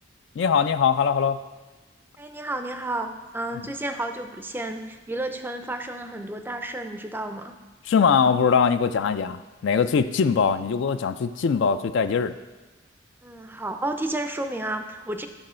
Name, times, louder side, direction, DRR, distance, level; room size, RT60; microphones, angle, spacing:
voice 1, 0.4-1.4 7.9-12.3, left 6 dB, 65° left, 12 dB, 0.3 m, -22 dB
voice 2, 2.2-7.5 13.2-15.3, right 1 dB, 10° right, 7 dB, 0.4 m, -31 dB
8.9 x 6.2 x 4.3 m, 1.2 s
head